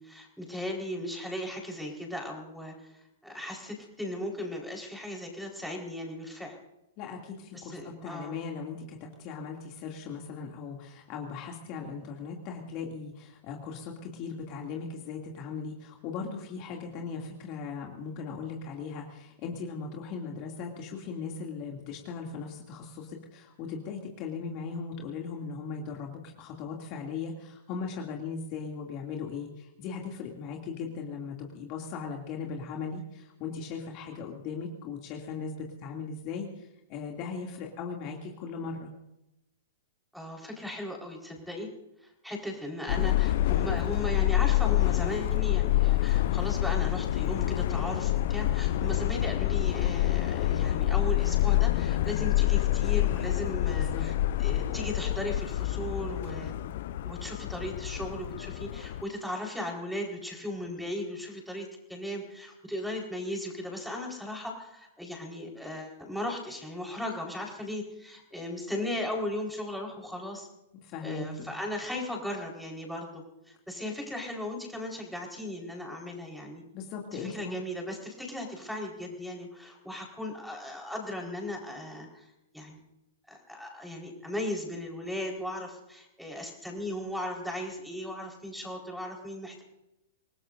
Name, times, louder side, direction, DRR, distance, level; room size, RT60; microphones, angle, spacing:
voice 1, 0.0-6.6 7.5-8.3 40.1-41.7 42.0-54.1 54.4-56.5 57.0-70.5 71.0-76.6 77.1-82.8 83.3-89.6, left 1 dB, ahead, 0 dB, 4.4 m, -37 dB
voice 2, 7.0-38.9 53.7-54.0 70.8-71.5 76.7-77.6, left 5 dB, 40° left, 0 dB, 2.6 m, -38 dB
Subway metro underground, 42.9-59.0, left 14 dB, 55° left, 0.6 m, -27 dB
27.5 x 19.0 x 2.6 m, 0.90 s
figure-of-eight pair, 110°, 0 cm